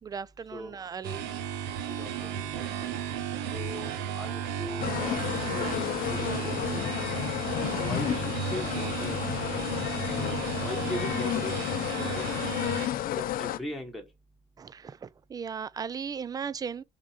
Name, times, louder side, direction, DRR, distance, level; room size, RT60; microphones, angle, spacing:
voice 1, 0.0-1.3 14.6-16.8, right 6 dB, 20° right, 0.4 m, -37 dB
sound 1, 1.0-12.9, right 9 dB, 85° right, 1.2 m, -34 dB
voice 2, 2.0-2.9 3.5-5.2 5.5-5.8 6.1-6.9 7.8-9.2 10.1-12.4 13.2-14.1, left 1 dB, ahead, 1.5 m, -39 dB
sound 2, 4.8-13.6, left 12 dB, 55° left, 0.6 m, -31 dB
6.3 x 4.1 x 5.1 m
cardioid pair, 135°, 17 cm